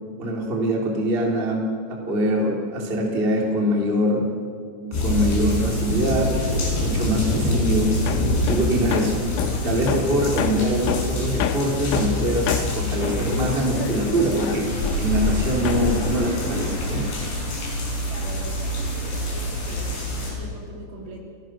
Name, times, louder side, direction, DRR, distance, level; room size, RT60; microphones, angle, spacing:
voice 1, 0.2-1.6 1.9-4.2 4.8-6.4 6.8-8.0 8.5-9.2 9.6-17.1, right 1 dB, 15° right, -1 dB, 2.3 m, -23 dB
sound 1, 4.9-20.3, left 1 dB, 55° left, 7.6 m, -26 dB
Hammer, 8.1-15.4 15.7-17.4, left 8 dB, 80° left, 3.6 m, -29 dB
voice 2, 18.0-21.2, right 2 dB, 70° right, 0 dB, 5.7 m, -41 dB
30.0 x 18.0 x 6.1 m, 2.2 s
omnidirectional pair, 5.7 m